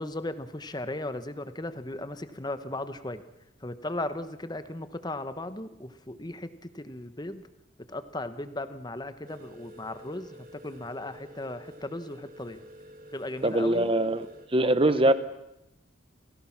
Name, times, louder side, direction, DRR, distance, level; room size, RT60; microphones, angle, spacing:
voice 1, 0.0-3.2 3.6-6.5 6.7-7.4 7.9-10.3 10.6-12.6 13.1-13.9 14.6-15.0, left 1 dB, 20° left, 11 dB, 1.1 m, -36 dB
sound 1, 9.2-14.5, equal, 45° right, 2.8 m, -49 dB
voice 2, 13.4-15.1, right 1 dB, 25° right, 13 dB, 1.0 m, -23 dB
30.0 x 17.0 x 6.0 m, 0.88 s
head